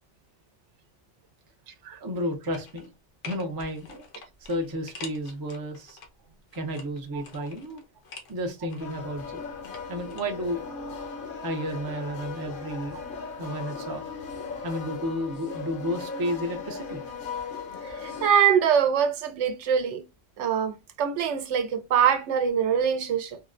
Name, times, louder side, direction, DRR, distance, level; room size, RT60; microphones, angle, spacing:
voice 1, 2.0-2.9 3.3-4.0 4.4-6.0 6.5-7.8 8.3-9.5 9.9-10.7 11.4-13.0 13.4-14.1 14.6-17.0, equal, 30° right, 0.4 m, -32 dB
sound 1, 2.5-2.9 3.2-6.1 6.5-8.3 8.7-10.2 10.5-10.6, left 4 dB, 90° left, 1.1 m, -45 dB
sound 2, 8.8-18.3, left 5 dB, 55° left, 0.7 m, -37 dB
voice 2, 17.8-20.0 20.4-23.4, right 8 dB, 80° right, 0.9 m, -24 dB
3.6 x 2.1 x 2.4 m
omnidirectional pair, 1.2 m